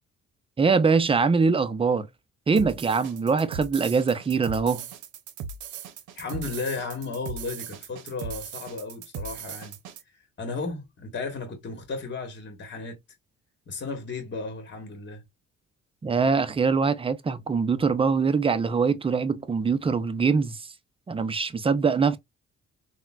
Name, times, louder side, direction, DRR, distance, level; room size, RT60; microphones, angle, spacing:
voice 1, 0.6-2.1 2.5-4.9 16.0-20.7 21.1-22.2, right 5 dB, 20° right, 0.4 m, -23 dB
sound 1, 2.6-10.0, right 6 dB, 80° right, 0.7 m, -38 dB
voice 2, 6.1-9.8 10.4-13.0 13.7-15.2, left 4 dB, 35° left, 1.1 m, -34 dB
3.7 x 2.2 x 2.2 m
cardioid pair, 90°, 30 cm